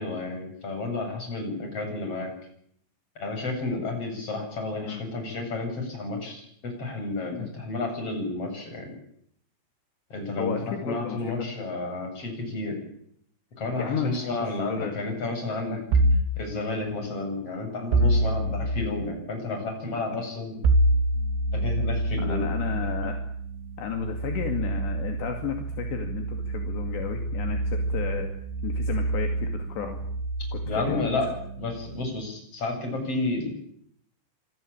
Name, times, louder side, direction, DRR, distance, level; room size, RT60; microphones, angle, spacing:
voice 1, 0.0-2.3 3.2-8.9 10.1-12.8 13.6-15.8 16.4-20.6 21.5-22.5 30.6-31.3 31.6-33.5, left 2 dB, 30° left, 4 dB, 9.0 m, -31 dB
voice 2, 10.4-11.3 13.8-15.0 16.0-16.1 18.0-18.2 22.2-23.2 23.8-28.3 28.6-30.0 30.5-30.6 30.9-31.1, left 7 dB, 70° left, 5 dB, 4.5 m, -33 dB
sound 1, 15.9-16.4 17.9-18.9 20.6-32.0, right 1 dB, 75° right, 5.4 m, -27 dB
26.5 x 21.5 x 8.9 m, 0.67 s
omnidirectional pair, 5.2 m